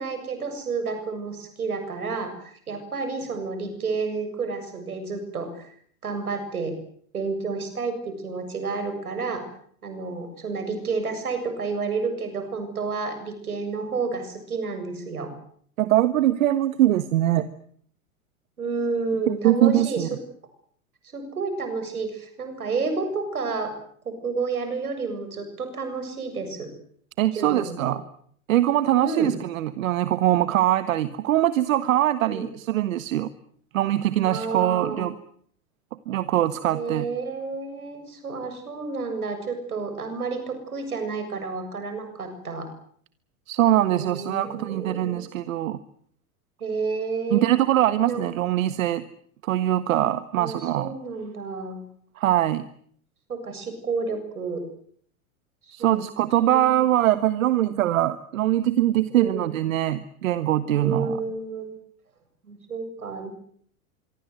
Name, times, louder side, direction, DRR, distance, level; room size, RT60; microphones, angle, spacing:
voice 1, 0.0-5.8 6.0-6.8 7.1-9.4 9.8-15.3 18.6-20.2 21.1-23.7 24.1-26.7 27.3-27.9 29.0-29.3 32.3-32.5 34.2-35.1 36.7-42.7 43.9-45.2 46.6-47.5 47.8-48.2 50.4-51.8 53.3-54.6 55.6-56.1 56.4-56.6 59.1-59.5 60.8-61.7 62.4-63.3, right 4 dB, 85° right, 8 dB, 7.3 m, -30 dB
voice 2, 15.8-17.5 19.4-20.1 27.2-28.0 28.5-33.3 33.7-35.1 36.1-37.1 43.5-45.8 47.3-49.0 49.4-50.9 52.2-52.7 55.7-61.2, right 13 dB, 65° right, 13 dB, 1.6 m, -22 dB
25.0 x 24.5 x 8.0 m, 0.62 s
hypercardioid pair, 95°, 43 cm